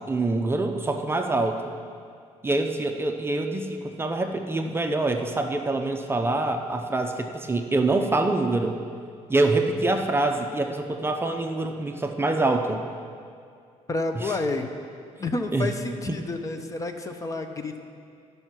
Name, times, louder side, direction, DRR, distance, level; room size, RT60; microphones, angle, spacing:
voice 1, 0.1-1.6 2.4-8.8 9.3-12.8 14.2-14.3 15.5-15.7 16.1-16.2, right 2 dB, 20° right, 4 dB, 0.6 m, -25 dB
voice 2, 13.9-14.7 15.2-17.9, left 2 dB, 25° left, 6 dB, 0.7 m, -30 dB
13.0 x 5.5 x 6.0 m, 2.3 s
cardioid pair, 125°, 13 cm